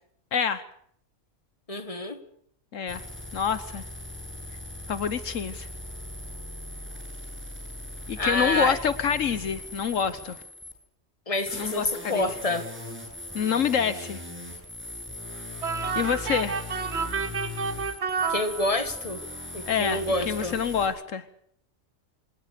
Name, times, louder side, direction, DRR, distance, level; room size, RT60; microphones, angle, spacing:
voice 1, 0.3-0.7 2.7-3.0 3.3-3.8 4.9-5.7 8.1-10.4 11.5-12.3 13.3-14.2 15.9-16.6 19.7-20.0 20.3-21.2, left 7 dB, 75° left, 14 dB, 1.4 m, -27 dB
voice 2, 1.7-2.2 8.2-8.8 11.3-12.7 18.3-19.2 19.5-20.6, left 2 dB, 25° left, 10 dB, 1.9 m, -27 dB
sound 1, 2.9-10.7 11.5-20.9, left 1 dB, 10° right, 7.5 m, -39 dB
sound 2, 15.6-19.1, right 5 dB, 60° right, 1.5 m, -30 dB
26.0 x 18.5 x 6.8 m, 0.68 s
omnidirectional pair, 1.3 m